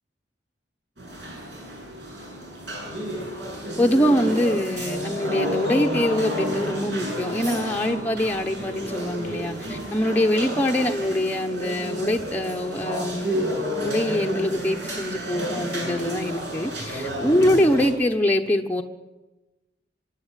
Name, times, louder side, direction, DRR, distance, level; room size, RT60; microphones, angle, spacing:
sound 1, 1.0-17.9, equal, 70° right, 7.3 m, -31 dB
voice 1, 3.8-13.5 13.8-18.8, left 1 dB, 10° left, 2 dB, 1.0 m, -24 dB
24.5 x 10.5 x 10.0 m, 1.1 s
head